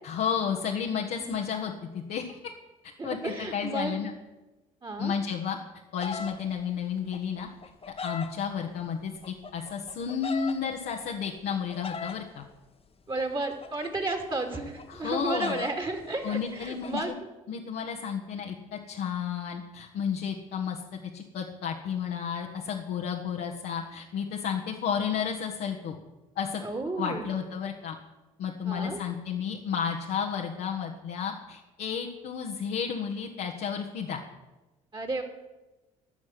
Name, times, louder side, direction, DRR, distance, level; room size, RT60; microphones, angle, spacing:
voice 1, 0.0-2.4 3.0-4.1 5.0-5.6 5.9-7.5 8.0-12.4 14.9-15.6 16.2-17.2 17.5-26.0 26.3-26.6 27.0-28.0 28.4-34.2, left 7 dB, 65° left, 0 dB, 1.5 m, -32 dB
voice 2, 3.0-4.0 4.8-5.1 13.1-17.1 26.6-27.3 28.6-29.0 34.9-35.2, right 2 dB, 30° right, 5 dB, 2.7 m, -32 dB
sound 1, 6.0-6.3 7.1-8.3 9.2-10.5 11.5-12.2 13.2-15.7 16.0-16.1 16.3-17.0, left 5 dB, 35° left, 1.4 m, -38 dB
14.0 x 6.3 x 9.5 m, 1.1 s
hypercardioid pair, 55°, 18 cm